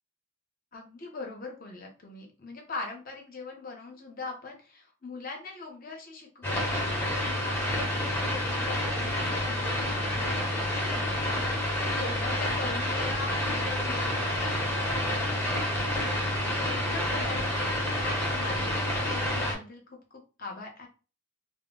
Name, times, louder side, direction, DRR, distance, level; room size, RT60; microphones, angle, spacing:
voice 1, 0.7-20.9, left 3 dB, 45° left, 1 dB, 0.7 m, -41 dB
sound 1, 6.4-19.5, left 1 dB, 10° left, 0.7 m, -29 dB
2.1 x 2.1 x 3.7 m, 0.34 s
head